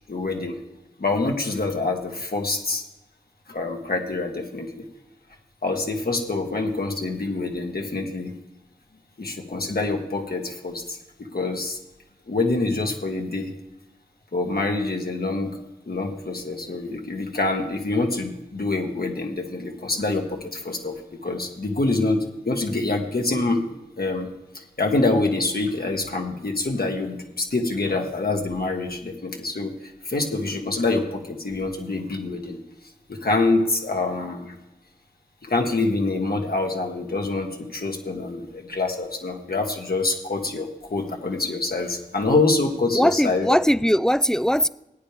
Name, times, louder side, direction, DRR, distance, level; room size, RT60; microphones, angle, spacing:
voice 1, 0.1-0.6 1.0-2.8 3.5-4.9 5.6-8.3 9.2-11.0 11.3-11.8 12.3-13.5 14.3-22.2 22.4-24.3 24.5-29.7 30.0-32.6 33.1-34.5 35.4-43.6, left 3 dB, 70° left, 1.6 m, -26 dB
voice 2, 42.9-44.7, equal, 5° left, 0.3 m, -20 dB
16.5 x 9.3 x 3.4 m
wide cardioid pair, 45°, 17 cm